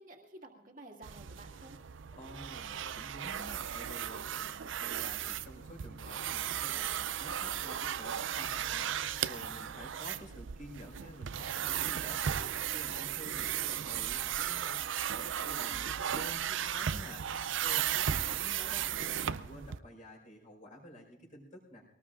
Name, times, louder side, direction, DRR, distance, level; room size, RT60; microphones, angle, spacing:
voice 1, 0.0-1.8 15.4-15.9, right 1 dB, 40° right, 1 dB, 2.1 m, -52 dB
sound 1, 1.0-19.8, right 9 dB, 65° right, 0.5 m, -35 dB
voice 2, 2.1-18.9 19.2-21.8, equal, 35° left, 0 dB, 4.8 m, -51 dB
22.5 x 19.0 x 2.5 m, 0.79 s
head